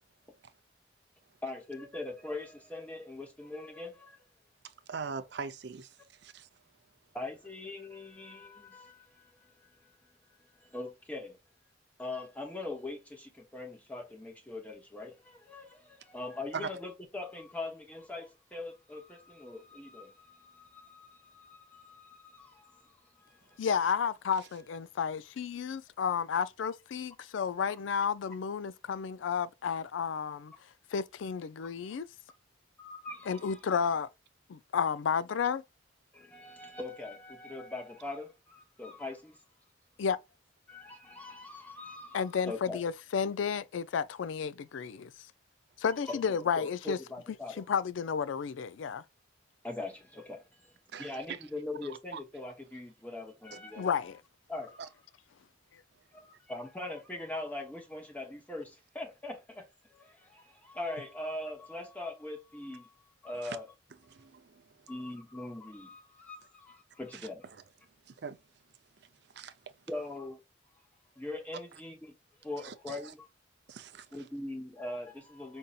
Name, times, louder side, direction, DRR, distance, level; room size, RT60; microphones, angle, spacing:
voice 1, 1.4-4.2 7.1-9.9 10.4-11.4 12.0-23.6 32.8-33.6 36.1-39.4 40.7-42.8 46.1-46.2 46.6-47.6 49.6-50.7 51.0-53.9 54.5-54.8 56.1-63.7 64.9-67.5 69.9-70.4 71.2-72.1 72.4-73.3 74.1-75.6, left 2 dB, 10° left, 0.8 m, -42 dB
voice 2, 4.9-5.9 6.2-6.5 16.5-16.7 50.9-51.1 52.1-52.2 53.5-53.6 54.8-54.9 63.4-63.6 64.1-64.6 68.2-68.4 69.3-69.5 72.6-73.1 73.7-74.1, right 5 dB, 60° right, 0.5 m, -40 dB
voice 3, 23.6-30.5 30.9-32.1 33.3-34.1 34.5-35.6 40.0-40.2 42.1-45.1 45.8-47.0 47.6-49.0 53.8-54.2, left 6 dB, 80° left, 0.4 m, -32 dB
5.2 x 2.7 x 2.3 m
head